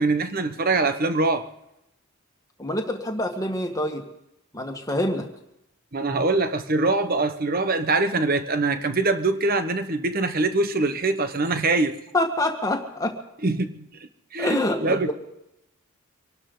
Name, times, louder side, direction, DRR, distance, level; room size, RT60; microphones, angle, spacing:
voice 1, 0.0-1.5 5.9-12.0 13.4-13.9 14.3-15.1, right 3 dB, 40° right, 9 dB, 1.1 m, -23 dB
voice 2, 2.6-4.0 4.5-5.3 12.1-13.1 14.4-15.1, left 1 dB, 15° left, 3 dB, 1.8 m, -26 dB
25.5 x 12.0 x 4.0 m, 0.85 s
head